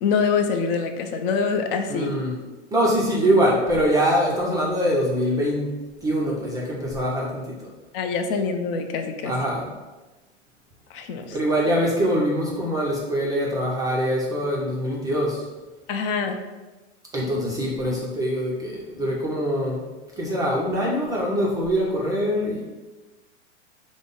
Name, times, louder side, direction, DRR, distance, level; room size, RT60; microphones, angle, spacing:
voice 1, 0.0-2.1 7.9-9.3 10.9-11.4 15.9-16.4, left 5 dB, 50° left, 5 dB, 0.5 m, -25 dB
voice 2, 1.9-2.4 2.7-5.7 6.0-7.7 9.2-9.7 11.3-15.4 17.1-19.9 20.2-22.6, equal, 10° right, -4 dB, 0.4 m, -23 dB
5.0 x 2.0 x 3.8 m, 1.2 s
hypercardioid pair, 125°, 36 cm